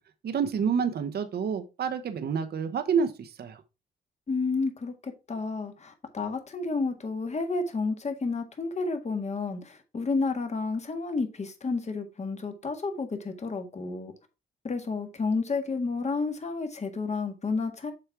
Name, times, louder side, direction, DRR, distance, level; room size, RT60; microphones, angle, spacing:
voice 1, 0.2-3.6, right 6 dB, 55° right, 1.0 m, -28 dB
voice 2, 4.3-14.1 14.6-17.9, left 4 dB, 35° left, 1.7 m, -31 dB
6.9 x 4.5 x 4.6 m
cardioid pair, 90°, 20 cm